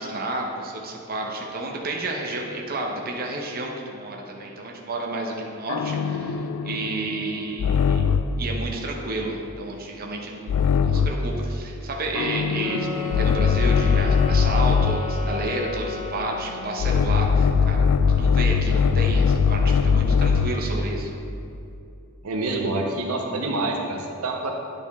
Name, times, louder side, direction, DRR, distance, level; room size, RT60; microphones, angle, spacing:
voice 1, 0.0-8.1 8.4-21.2, right 2 dB, 45° right, 0 dB, 0.8 m, -31 dB
sound 1, 5.7-8.4 10.5-11.3 12.2-15.1 16.8-20.7, left 6 dB, 85° left, 0.3 m, -21 dB
sound 2, 12.6-16.8, left 6 dB, 10° right, 1.7 m, -34 dB
voice 2, 22.2-24.5, right 2 dB, 75° right, 1 dB, 0.7 m, -27 dB
9.4 x 5.1 x 3.5 m, 2.6 s
head